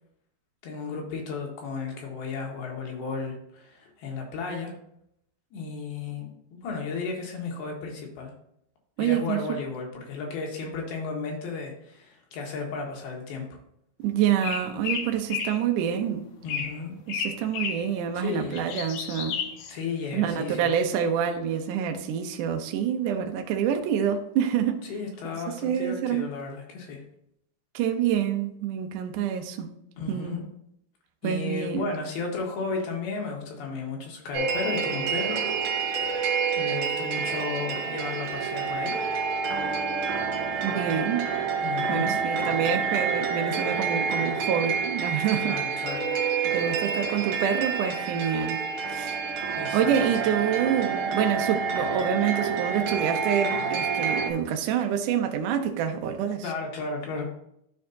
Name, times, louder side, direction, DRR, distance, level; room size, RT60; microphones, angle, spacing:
voice 1, 0.6-4.7 5.5-8.3 9.0-13.6 16.4-17.0 18.1-18.6 19.7-20.7 24.9-27.0 30.0-30.5 31.2-36.0 36.6-38.9 41.6-42.2 45.4-46.1 49.6-50.0 56.4-57.3, left 4 dB, 75° left, 3.3 m, -34 dB
voice 2, 9.0-9.6 14.0-16.2 17.1-19.4 20.1-24.8 25.6-26.3 27.7-29.7 30.1-30.4 31.2-31.9 40.6-41.2 41.9-45.6 46.4-48.6 48.9-49.2 49.7-56.5, right 8 dB, 85° right, 1.8 m, -27 dB
sound 1, 14.4-15.6 16.5-16.8 17.1-17.9 18.3-19.7, left 7 dB, 90° left, 1.8 m, -32 dB
sound 2, 34.3-54.3, right 5 dB, 70° right, 2.7 m, -28 dB
12.5 x 4.4 x 2.8 m
omnidirectional pair, 4.6 m